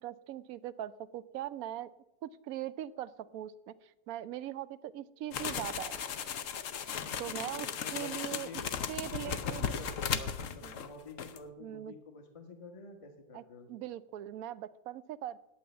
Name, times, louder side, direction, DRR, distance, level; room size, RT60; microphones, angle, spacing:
voice 1, 0.0-1.9 2.2-6.0 7.2-7.7 7.9-8.5 8.9-9.7 10.6-10.7 11.6-11.9 13.3-13.4 13.7-15.4, right 12 dB, 70° right, 16 dB, 0.9 m, -40 dB
sound 1, 5.3-10.9 11.2-11.4, left 7 dB, 60° left, 1.0 m, -36 dB
voice 2, 7.0-8.7 9.1-13.7, left 3 dB, 20° left, 6 dB, 1.2 m, -49 dB
9.5 x 8.5 x 8.2 m, 0.90 s
omnidirectional pair, 1.7 m